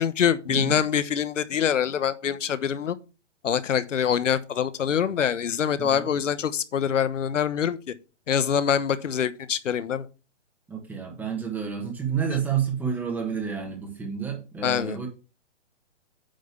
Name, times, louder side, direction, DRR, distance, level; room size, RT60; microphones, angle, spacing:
voice 1, 0.0-3.0 3.4-7.8 8.3-10.1 14.6-15.0, left 8 dB, 85° left, 1.0 m, -25 dB
voice 2, 10.7-15.1, right 7 dB, 5° right, 1.3 m, -29 dB
9.1 x 3.4 x 6.8 m
hypercardioid pair, 160°, 36 cm